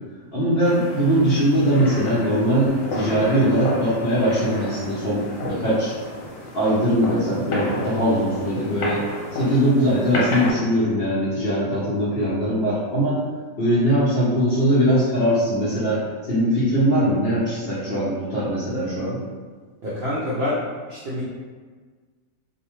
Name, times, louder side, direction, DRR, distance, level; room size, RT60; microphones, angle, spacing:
voice 1, 0.3-5.9 6.5-9.0 9.3-13.2 13.6-16.0 16.3-19.2, equal, 55° left, -10 dB, 0.7 m, -21 dB
sound 1, 0.6-10.5, left 1 dB, 75° left, 1.1 m, -31 dB
voice 2, 19.8-21.2, left 1 dB, 65° right, -9 dB, 0.6 m, -27 dB
2.6 x 2.1 x 3.0 m, 1.5 s
omnidirectional pair, 1.7 m